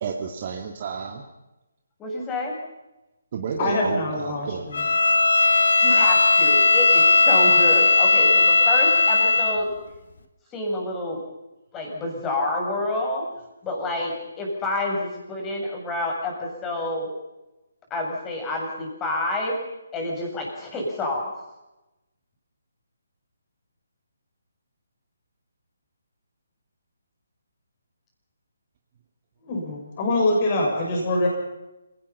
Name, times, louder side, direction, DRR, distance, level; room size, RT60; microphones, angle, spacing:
voice 1, 0.0-1.2 3.3-4.7, right 6 dB, 40° right, 2 dB, 2.2 m, -31 dB
voice 2, 2.0-2.5 5.8-9.7 10.5-11.2 11.7-13.2 13.6-17.1 17.9-19.5 19.9-21.3, left 2 dB, 15° left, 0 dB, 7.3 m, -28 dB
voice 3, 3.6-4.8 29.5-31.3, left 2 dB, 35° left, -1 dB, 7.0 m, -24 dB
Bowed string instrument, 4.7-9.6, left 4 dB, 60° left, 2.3 m, -17 dB
28.5 x 18.0 x 5.7 m, 0.98 s
figure-of-eight pair, 145°, 0 cm